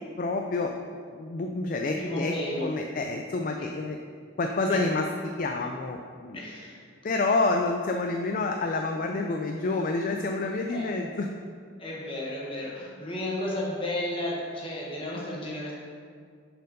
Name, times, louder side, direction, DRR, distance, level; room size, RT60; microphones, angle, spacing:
voice 1, 0.2-0.7 1.1-4.0 4.4-6.4 7.0-11.3, left 3 dB, 45° left, 3 dB, 0.3 m, -28 dB
voice 2, 1.8-2.7 4.7-4.8 6.3-6.8 10.7-10.9 11.8-15.8, left 1 dB, 25° left, -4 dB, 1.3 m, -33 dB
6.4 x 4.4 x 5.3 m, 2.1 s
head